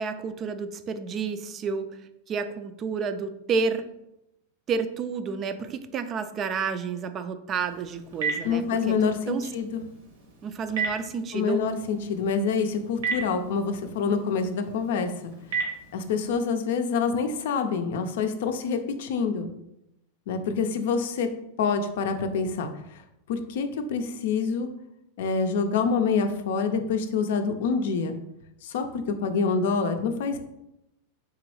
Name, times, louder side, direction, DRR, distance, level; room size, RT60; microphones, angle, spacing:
voice 1, 0.0-2.0 2.3-3.9 4.7-9.5 10.4-11.6, right 5 dB, 35° right, 10 dB, 0.4 m, -30 dB
Telephone, 7.5-16.4, right 5 dB, 80° right, 1.1 m, -36 dB
voice 2, 8.4-9.8 11.3-15.3 15.9-19.5 20.3-21.3 21.6-22.7 23.3-24.7 25.2-28.1 28.6-30.4, left 5 dB, 70° left, 7 dB, 0.5 m, -26 dB
3.6 x 3.0 x 3.1 m, 0.85 s
hypercardioid pair, 110°, 0 cm